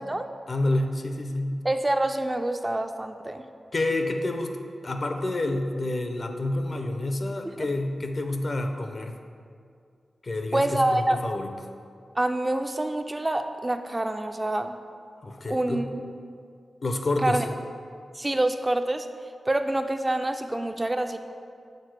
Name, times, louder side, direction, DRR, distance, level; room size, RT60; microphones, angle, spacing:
voice 1, 0.5-1.6 3.7-4.6 4.8-9.2 10.2-11.5 15.2-15.9 16.8-17.5, left 2 dB, 50° left, 5 dB, 0.5 m, -28 dB
voice 2, 1.6-3.4 7.6-7.7 10.5-11.2 12.2-14.8 15.5-16.0 17.2-17.4 18.1-19.1 19.5-21.2, right 1 dB, 20° right, 7 dB, 0.3 m, -26 dB
6.6 x 4.2 x 4.6 m, 2.3 s
wide cardioid pair, 75°, 0 cm